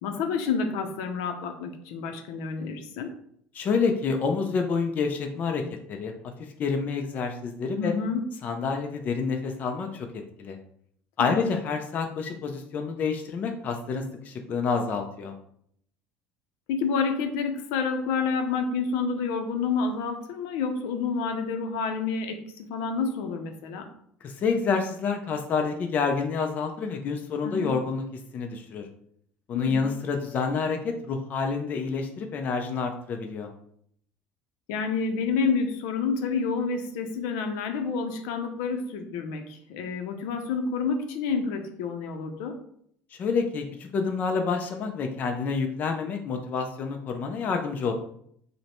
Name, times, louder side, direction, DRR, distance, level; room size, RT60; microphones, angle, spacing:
voice 1, 0.0-3.1 7.7-8.3 11.2-11.5 16.7-23.9 27.4-27.7 29.5-29.9 34.7-42.6, left 5 dB, 80° left, 6 dB, 0.6 m, -29 dB
voice 2, 3.5-5.6 5.9-6.1 6.6-7.9 8.4-10.6 11.2-15.3 24.2-28.0 28.3-28.9 29.5-33.5 43.2-47.9, left 5 dB, 35° left, 4 dB, 0.5 m, -28 dB
5.1 x 2.1 x 3.0 m, 0.67 s
cardioid pair, 145°, 5 cm